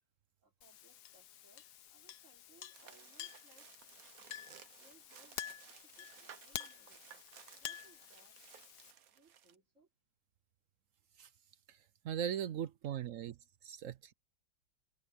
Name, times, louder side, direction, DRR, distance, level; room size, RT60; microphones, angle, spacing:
voice 1, 0.4-3.7 4.7-7.3 7.6-8.4 9.1-9.9, right 2 dB, 40° right, 4.2 m, -68 dB
Chink clink, 0.6-8.9, left 11 dB, 65° left, 1.3 m, -49 dB
sound 1, 2.7-9.6, right 9 dB, 55° right, 1.3 m, -58 dB
voice 2, 12.0-13.3 13.6-14.1, right 9 dB, 70° right, 0.7 m, -39 dB
omnidirectional pair, 2.0 m